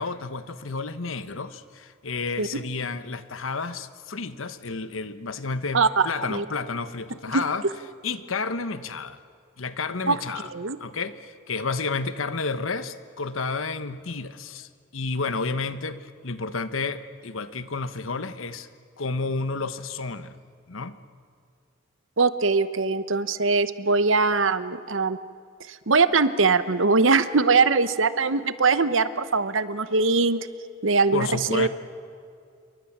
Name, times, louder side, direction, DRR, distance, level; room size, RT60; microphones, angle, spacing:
voice 1, 0.0-7.6 8.0-9.2 9.6-10.5 10.8-18.7 19.0-20.3 20.7-21.0 31.1-31.7, left 4 dB, 90° left, 12 dB, 1.1 m, -31 dB
voice 2, 5.7-6.4 7.3-7.4 10.1-10.2 10.5-10.8 22.2-25.2 25.7-30.4 30.8-31.7, right 4 dB, 80° right, 13 dB, 1.0 m, -22 dB
28.5 x 23.5 x 7.4 m, 2.3 s
head